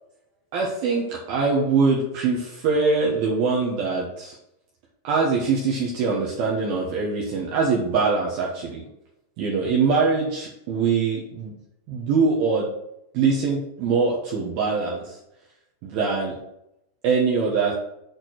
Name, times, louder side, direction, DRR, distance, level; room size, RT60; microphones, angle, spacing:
voice 1, 0.5-4.4 5.0-8.8 9.4-11.5 11.9-12.7 13.1-15.2 15.8-16.3 17.0-17.7, right 4 dB, 80° right, -3 dB, 2.1 m, -23 dB
8.7 x 4.3 x 6.2 m, 0.82 s
omnidirectional pair, 6.0 m